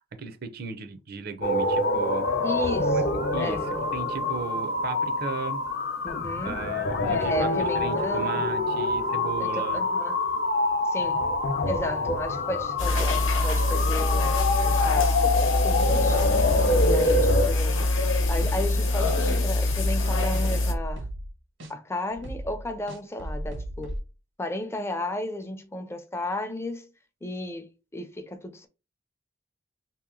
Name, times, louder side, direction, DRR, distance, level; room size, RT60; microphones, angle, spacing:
voice 1, 0.0-2.3 2.9-3.0 3.3-5.6 6.4-9.8, right 5 dB, 55° right, 0.6 m, -36 dB
sound 1, 1.4-17.5, left 2 dB, 55° left, 0.6 m, -26 dB
voice 2, 2.4-3.7 6.0-6.6 7.1-8.5 9.4-10.2 10.8-11.3 11.6-14.3 14.6-16.6 16.8-17.9 18.3-21.1 21.7-24.0 24.4-26.9 27.2-28.7, left 1 dB, 15° left, 0.5 m, -34 dB
sound 2, 12.8-20.7, left 2 dB, 90° left, 0.8 m, -24 dB
sound 3, 18.2-18.7 19.0-19.2 19.6-20.0 20.3-21.3 21.6-21.7 22.1-24.0, equal, 85° right, 1.4 m, -36 dB
3.0 x 2.9 x 3.7 m
head